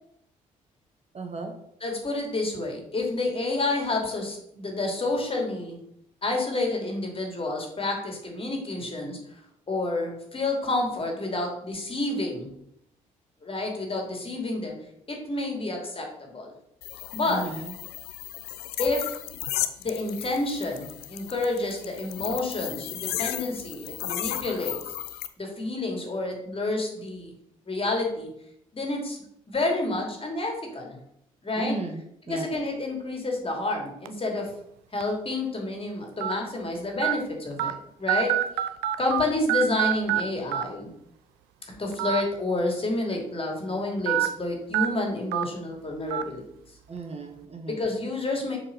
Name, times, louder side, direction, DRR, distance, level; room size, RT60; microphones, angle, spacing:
voice 1, 1.1-1.5 17.3-17.7 31.6-32.0 32.3-32.5 46.9-47.8, right 3 dB, 35° right, 4 dB, 1.3 m, -35 dB
voice 2, 1.8-5.8 6.2-9.4 9.7-12.5 13.4-14.7 15.1-16.5 17.1-17.5 18.8-19.2 19.8-24.8 25.4-27.3 27.6-28.3 28.7-31.0 31.4-31.8 32.3-34.5 34.9-38.4 39.0-40.9 41.7-46.4 47.7-48.6, left 2 dB, 30° left, 1 dB, 2.7 m, -29 dB
sound 1, 16.8-25.3, left 13 dB, 65° left, 0.5 m, -35 dB
sound 2, 34.1-34.3 35.0-35.1 36.2-36.3 37.0-37.1 37.6-37.7 38.1-39.2 39.5-40.2 40.5-40.6 41.9-42.2 42.6-42.7 44.1-44.3 44.7-44.9 45.3-45.4 46.1-46.2, right 13 dB, 70° right, 0.5 m, -25 dB
7.1 x 4.3 x 5.5 m, 0.74 s
figure-of-eight pair, 45°, 18 cm